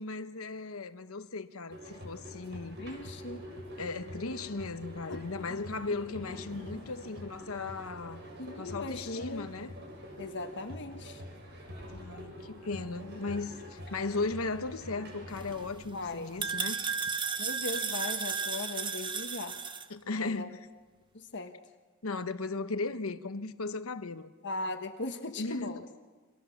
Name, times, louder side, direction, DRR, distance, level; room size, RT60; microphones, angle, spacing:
voice 1, 0.0-2.8 3.8-8.2 8.6-9.7 11.9-16.8 19.9-20.6 22.0-24.3 25.4-25.8, left 3 dB, 80° left, 1.1 m, -36 dB
sound 1, 1.7-15.6, equal, 55° right, 7.0 m, -45 dB
voice 2, 2.8-3.4 5.1-5.2 8.4-9.5 10.2-11.2 15.9-16.4 17.4-19.6 20.1-20.6 21.1-21.5 24.4-25.8, left 2 dB, 55° left, 1.4 m, -38 dB
sound 2, 15.3-19.9, right 6 dB, 25° right, 1.0 m, -35 dB
29.0 x 24.5 x 7.2 m
head